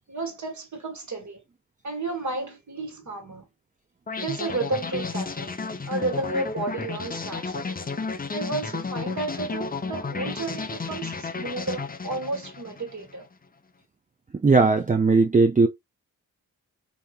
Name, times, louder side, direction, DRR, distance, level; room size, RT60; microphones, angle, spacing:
voice 1, 0.1-1.4 1.8-3.5 4.2-5.6 5.9-7.8 8.3-13.2, right 2 dB, 50° right, 1.5 m, -32 dB
sound 1, 4.1-13.1, left 4 dB, 25° left, 0.6 m, -32 dB
voice 2, 14.4-15.7, right 3 dB, 20° right, 0.5 m, -18 dB
3.4 x 2.8 x 2.3 m
cardioid pair, 50°, 37 cm